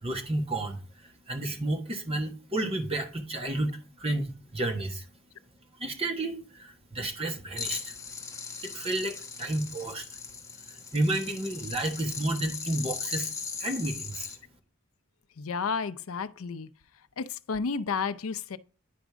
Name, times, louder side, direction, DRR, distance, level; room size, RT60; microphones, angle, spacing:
voice 1, 0.0-5.1 5.8-7.9 8.6-10.0 10.9-13.3 13.6-14.3, right 1 dB, 30° right, 1.4 m, -31 dB
sound 1, 7.6-14.4, left 5 dB, 15° left, 1.2 m, -38 dB
voice 2, 15.4-16.7 17.2-18.6, left 5 dB, 80° left, 0.5 m, -31 dB
10.0 x 5.1 x 3.6 m
head